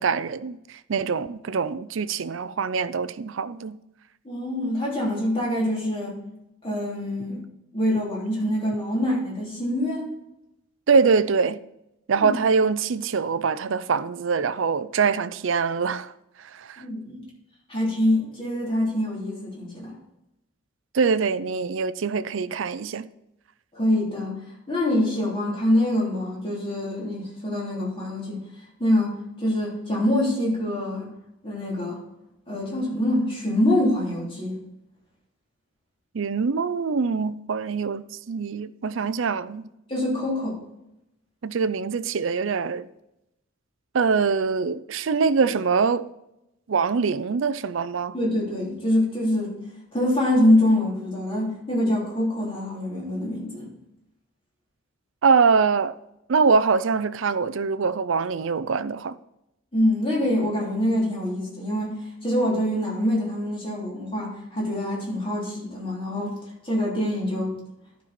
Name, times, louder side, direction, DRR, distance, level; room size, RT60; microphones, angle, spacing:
voice 1, 0.0-3.8 10.9-11.6 12.1-16.1 16.4-16.8 20.9-23.1 36.1-39.6 41.4-42.9 43.9-46.1 46.7-48.1 55.2-56.0 56.3-59.2, right 5 dB, 70° right, 0.5 m, -23 dB
voice 2, 4.2-6.2 6.6-7.4 7.7-10.1 12.2-12.3 16.8-17.2 17.7-20.0 23.7-24.4 24.7-28.4 28.8-31.1 31.4-32.0 32.5-34.6 39.9-40.6 48.1-49.5 49.9-53.7 59.7-61.9 62.2-66.3 66.6-67.6, left 1 dB, 25° left, 3.2 m, -25 dB
12.0 x 5.6 x 4.3 m
head